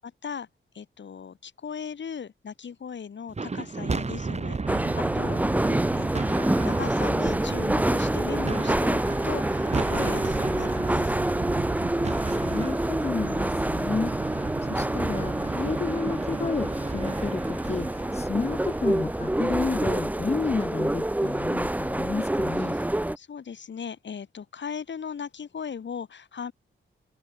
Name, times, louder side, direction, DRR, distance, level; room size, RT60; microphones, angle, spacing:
voice 1, 0.0-0.5 0.7-5.6 6.0-11.1 22.7-22.8 23.2-26.5, left 7 dB, 60° left, 4.2 m, -38 dB
sound 1, 3.3-19.7, right 4 dB, 30° right, 3.9 m, -33 dB
sound 2, 4.7-23.2, right 1 dB, 5° right, 1.2 m, -27 dB
voice 2, 12.3-22.8, left 4 dB, 30° left, 1.4 m, -31 dB
wide cardioid pair, 150°, 21 cm